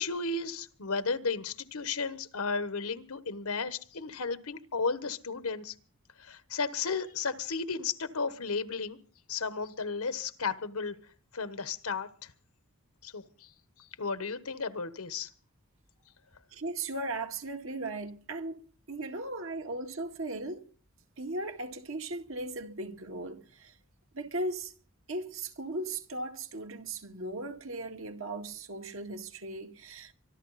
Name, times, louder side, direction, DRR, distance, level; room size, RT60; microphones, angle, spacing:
voice 1, 0.0-5.7 6.2-9.0 9.3-11.0 11.3-12.3 13.0-13.5 14.0-15.3, left 4 dB, 90° left, 1.2 m, -34 dB
voice 2, 16.5-18.6 18.9-20.7 21.2-23.7 24.1-24.7 25.1-30.1, right 2 dB, 70° right, 2.0 m, -37 dB
24.5 x 12.5 x 4.1 m
head